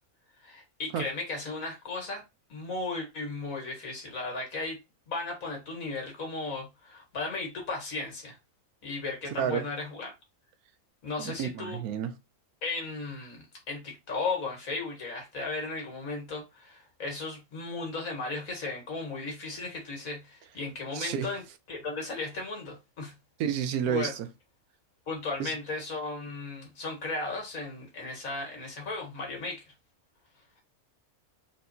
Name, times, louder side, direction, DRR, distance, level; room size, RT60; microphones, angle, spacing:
voice 1, 0.4-2.2 2.5-4.8 5.1-8.4 8.8-10.1 11.0-11.8 12.6-21.4 21.7-23.1 23.9-24.1 25.1-29.6, left 3 dB, 65° left, 2.0 m, -35 dB
voice 2, 11.2-12.2 20.9-21.3 23.4-24.3 25.4-25.5, right 8 dB, 85° right, 1.1 m, -30 dB
4.2 x 3.6 x 2.7 m
omnidirectional pair, 1.5 m